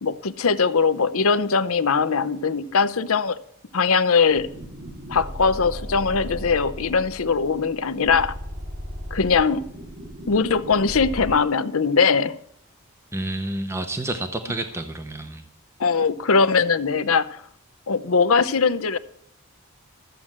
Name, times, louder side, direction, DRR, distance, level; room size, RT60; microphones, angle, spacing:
voice 1, 0.0-3.4 3.7-4.5 5.1-8.3 9.1-9.6 10.3-12.4 15.8-17.4 17.9-19.0, left 5 dB, 70° left, 0.7 m, -21 dB
sound 1, 4.3-11.4, equal, 45° right, 2.1 m, -36 dB
voice 2, 13.1-15.4, right 1 dB, 10° right, 0.8 m, -29 dB
13.5 x 7.8 x 7.3 m
head